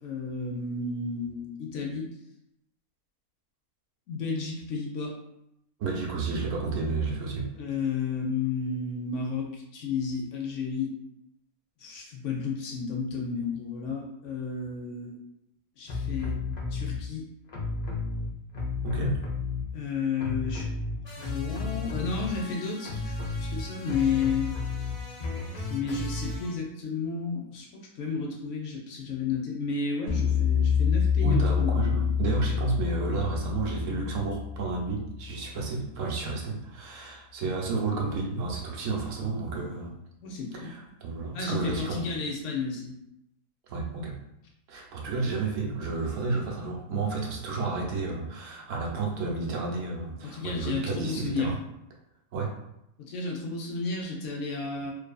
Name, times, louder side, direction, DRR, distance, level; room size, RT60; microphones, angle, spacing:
voice 1, 0.0-2.1 4.1-5.2 7.6-10.9 11.8-15.2 15.8-16.4 16.7-17.3 19.7-20.7 21.2-24.5 25.7-32.2 40.2-40.7 41.3-42.9 45.1-45.4 50.2-51.5 53.0-54.9, left 4 dB, 65° left, 0 dB, 0.8 m, -32 dB
voice 2, 5.8-7.5 18.8-19.2 31.2-39.9 40.5-42.1 43.7-44.2 44.7-51.6 52.3-52.5, right 3 dB, 70° right, -1 dB, 0.9 m, -31 dB
sound 1, 15.9-17.0 17.5-19.9 20.2-26.5, left 3 dB, 85° left, 0.3 m, -33 dB
sound 2, 30.1-35.4, left 7 dB, 35° left, 1.0 m, -27 dB
2.6 x 2.5 x 2.2 m, 0.81 s
omnidirectional pair, 1.5 m